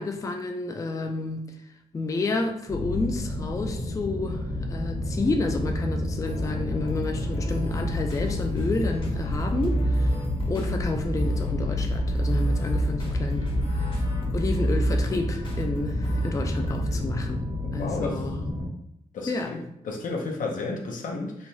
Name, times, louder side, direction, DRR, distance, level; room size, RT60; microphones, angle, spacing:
voice 1, 0.0-1.4 1.9-10.2 10.5-13.5 13.7-14.0 14.3-17.5 17.7-18.5 19.3-19.5, left 3 dB, 25° left, 4 dB, 0.3 m, -30 dB
sound 1, 2.7-18.7, left 2 dB, 55° right, 1.0 m, -31 dB
sound 2, 6.2-16.9, right 1 dB, 40° left, 0.8 m, -29 dB
voice 2, 17.6-18.3 19.1-21.5, left 3 dB, 75° left, 1 dB, 0.6 m, -32 dB
3.1 x 2.2 x 2.6 m, 0.77 s
cardioid pair, 70°, 14 cm